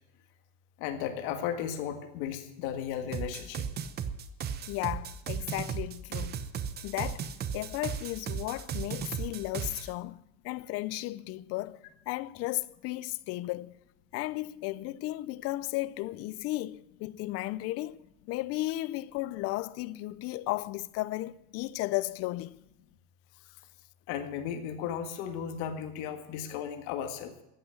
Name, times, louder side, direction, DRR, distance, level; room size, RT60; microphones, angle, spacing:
voice 1, 0.8-3.7 24.1-27.3, left 9 dB, 65° left, 1.7 m, -35 dB
sound 1, 3.1-9.9, right 7 dB, 25° right, 0.7 m, -36 dB
voice 2, 4.7-6.4 6.8-7.3 7.5-11.8 12.1-13.7 14.1-18.0 18.3-22.6, left 18 dB, 40° left, 0.5 m, -34 dB
14.0 x 8.8 x 9.3 m
cardioid pair, 175°, 39 cm